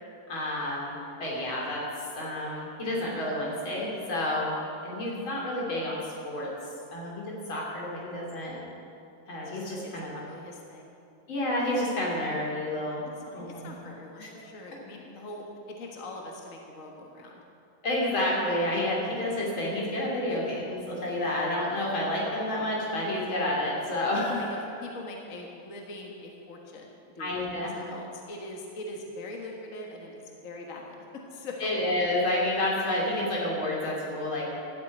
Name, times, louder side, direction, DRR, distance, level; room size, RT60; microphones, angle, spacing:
voice 1, 0.3-1.8 2.1-6.5 6.9-8.6 9.3-10.2 11.3-13.1 13.3-13.8 14.2-14.3 17.8-24.6 27.2-27.8 31.6-34.5, left 1 dB, 75° left, -4 dB, 3.8 m, -30 dB
voice 2, 9.4-10.9 13.2-17.4 23.8-23.9 24.3-31.0 31.3-31.7, left 2 dB, 40° left, 0 dB, 1.7 m, -42 dB
13.0 x 8.5 x 8.5 m, 2.6 s
omnidirectional pair, 2.2 m